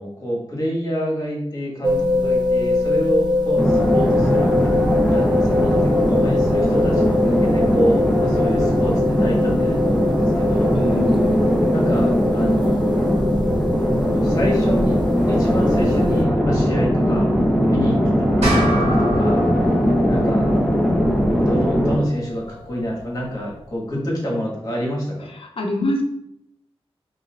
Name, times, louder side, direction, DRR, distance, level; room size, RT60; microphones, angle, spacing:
voice 1, 0.0-4.5 5.1-10.7 11.7-15.0 15.2-17.3 17.7-18.0 18.4-19.4 20.1-20.5 21.5-25.3, equal, 35° left, -4 dB, 1.4 m, -27 dB
sound 1, 1.8-16.2, left 2 dB, 45° right, 0.5 m, -23 dB
sound 2, 3.6-22.0, equal, ahead, 0.7 m, -19 dB
voice 2, 10.7-11.4 25.3-26.0, left 1 dB, 60° left, 2 dB, 0.6 m, -24 dB
sound 3, 18.4-23.2, equal, 90° right, 1.1 m, -29 dB
5.5 x 2.5 x 2.3 m, 0.80 s
wide cardioid pair, 115°, 10 cm